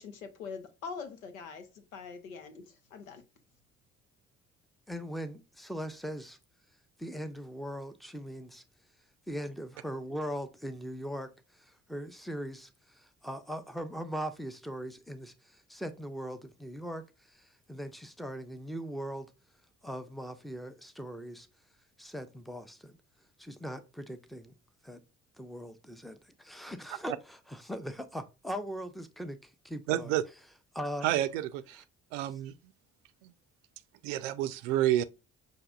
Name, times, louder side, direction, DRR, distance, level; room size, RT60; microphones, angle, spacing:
voice 1, 0.0-3.2, left 5 dB, 80° left, 0.8 m, -43 dB
voice 2, 4.9-6.4 7.0-8.6 9.3-19.3 19.8-21.5 22.0-23.0 23.4-24.5 24.8-25.0 25.4-30.2 30.7-31.1 31.8-31.9, equal, ahead, 0.6 m, -40 dB
voice 3, 29.9-30.2 31.0-31.8 32.1-32.5 33.2-33.3 34.0-35.0, right 13 dB, 70° right, 0.5 m, -29 dB
5.8 x 2.7 x 2.3 m
figure-of-eight pair, 45°, 40 cm